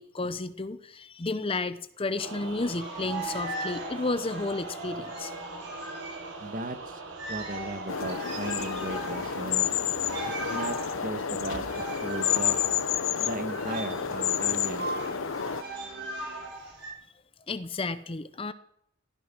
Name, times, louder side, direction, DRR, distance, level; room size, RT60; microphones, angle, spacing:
voice 1, 0.0-5.3 17.5-18.5, left 3 dB, 30° left, 13 dB, 0.7 m, -32 dB
sound 1, 2.2-16.5, right 3 dB, 80° right, 3.6 m, -44 dB
sound 2, 2.6-6.5 6.8-6.9 7.1-16.9, right 2 dB, 60° right, 5.8 m, -39 dB
voice 2, 6.4-9.7 10.3-12.6 13.2-14.9, right 2 dB, 45° right, 10 dB, 1.5 m, -37 dB
sound 3, 7.9-15.6, left 8 dB, 85° left, 0.8 m, -30 dB
16.0 x 14.0 x 6.1 m, 0.71 s
head